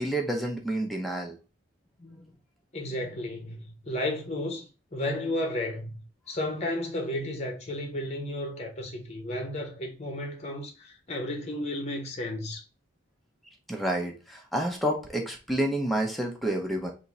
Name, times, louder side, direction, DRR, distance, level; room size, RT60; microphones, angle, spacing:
voice 1, 0.0-1.4 13.7-16.9, right 1 dB, ahead, 0.8 m, -29 dB
voice 2, 2.0-2.3 2.7-12.6, left 1 dB, 35° left, 0.9 m, -33 dB
3.6 x 2.7 x 4.1 m
head